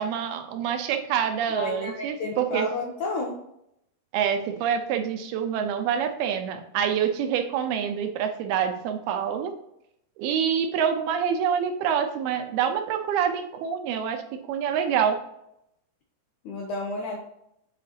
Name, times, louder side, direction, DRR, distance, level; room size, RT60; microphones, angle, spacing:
voice 1, 0.0-2.7 4.1-9.5 10.2-14.2 14.5-15.2, right 8 dB, 80° right, 6 dB, 2.6 m, -26 dB
voice 2, 1.5-3.4 16.5-17.2, left 2 dB, 70° left, -1 dB, 2.0 m, -31 dB
8.3 x 5.3 x 2.9 m, 0.77 s
omnidirectional pair, 4.6 m